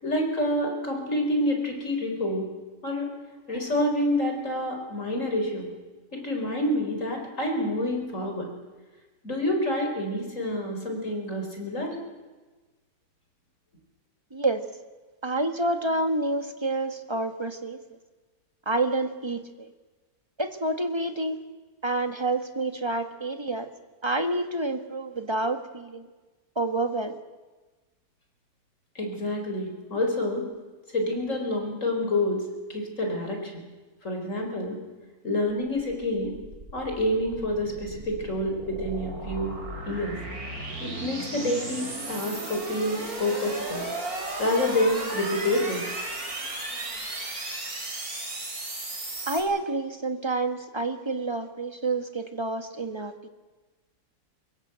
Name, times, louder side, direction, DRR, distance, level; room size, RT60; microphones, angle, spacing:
voice 1, 0.0-2.5 2.8-3.1 3.5-5.7 6.1-8.5 9.2-12.0 28.9-30.4 30.9-33.6 34.0-34.8 35.2-36.4 36.7-39.5 39.9-40.2 40.8-43.8 44.4-45.8, left 1 dB, 45° left, 2 dB, 4.9 m, -28 dB
voice 2, 15.2-17.8 18.6-19.7 20.4-21.4 21.8-23.7 24.0-26.1 26.5-27.2 49.3-53.3, right 2 dB, 15° right, 7 dB, 1.4 m, -28 dB
sound 1, 35.8-49.4, right 2 dB, 55° right, 4.1 m, -35 dB
24.0 x 22.0 x 8.1 m, 1.2 s
omnidirectional pair, 1.8 m